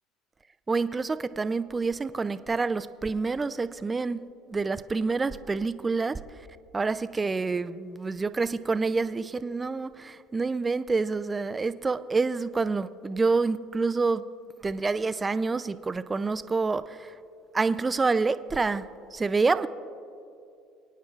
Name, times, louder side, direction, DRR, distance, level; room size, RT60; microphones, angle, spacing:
voice 1, 0.7-6.2 6.7-14.3 14.6-17.1 17.5-19.7, right 4 dB, 25° right, 13 dB, 0.4 m, -27 dB
24.5 x 9.3 x 2.4 m, 2.5 s
hypercardioid pair, 75°, 0 cm